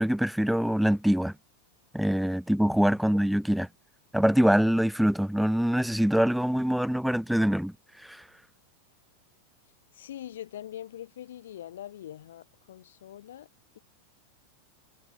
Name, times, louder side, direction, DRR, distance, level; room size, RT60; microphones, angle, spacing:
voice 1, 0.0-1.3 1.9-3.7 4.1-7.7 8.0-8.2, equal, ahead, 1.5 m, -24 dB
voice 2, 9.9-13.5, left 11 dB, 60° left, 6.3 m, -43 dB
figure-of-eight pair, 90°, 0 cm